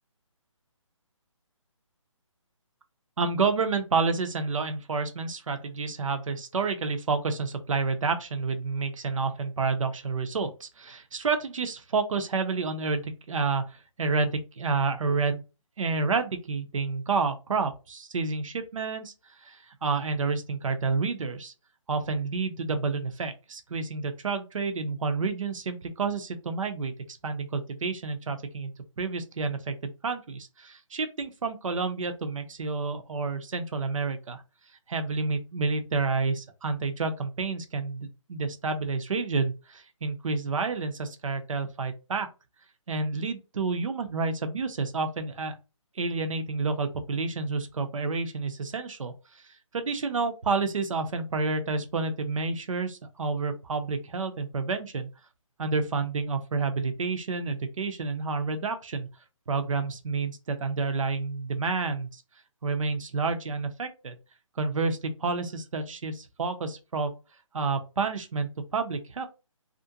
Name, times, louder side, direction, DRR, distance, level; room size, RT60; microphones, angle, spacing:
voice 1, 3.2-15.4 15.8-19.1 19.4-21.5 21.9-26.9 27.2-34.4 34.9-42.3 42.9-45.5 46.0-49.1 49.7-55.1 55.6-59.1 59.5-62.2 62.6-64.2 64.6-67.1 67.5-69.3, right 4 dB, 75° right, 8 dB, 0.6 m, -29 dB
2.5 x 2.1 x 2.6 m, 0.30 s
hypercardioid pair, 160°, 17 cm